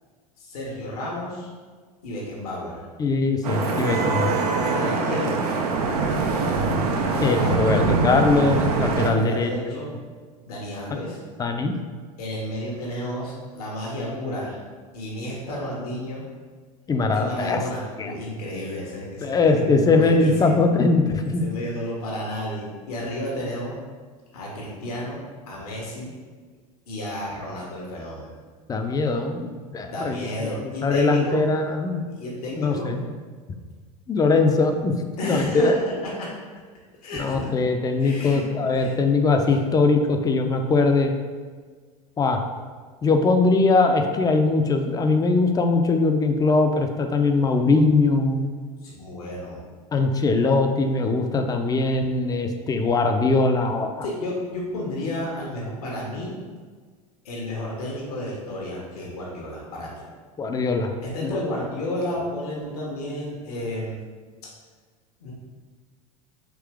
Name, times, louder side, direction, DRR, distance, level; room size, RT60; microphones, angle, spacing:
voice 1, 0.4-1.5 2.0-2.8 4.6-5.4 6.9-7.9 8.9-9.9 10.5-11.2 12.2-14.6 14.9-16.2 17.1-20.7 21.4-23.8 24.3-26.1 26.9-28.3 29.8-31.4 32.1-32.9 35.2-36.3 37.0-37.5 38.0-38.4 38.8-38.9 48.8-49.6 54.0-56.3 57.2-60.0 61.0-63.9 64.4-64.5 65.2-65.3, left 1 dB, 80° left, -4 dB, 1.0 m, -32 dB
voice 2, 3.0-4.4 7.2-9.5 11.4-11.7 16.9-17.6 18.0-18.1 19.2-21.4 28.7-30.5 30.8-32.0 32.6-33.0 34.1-34.9 35.2-35.8 37.2-41.1 42.2-42.4 43.0-48.5 49.9-54.1 60.4-60.9 61.2-61.4, left 3 dB, 20° left, 5 dB, 0.4 m, -21 dB
Vehicle horn car horn honking / Traffic noise roadway noise, 3.4-9.1, right 4 dB, 80° right, 0.5 m, -23 dB
3.7 x 2.8 x 3.4 m, 1.5 s
hypercardioid pair, 90°, 19 cm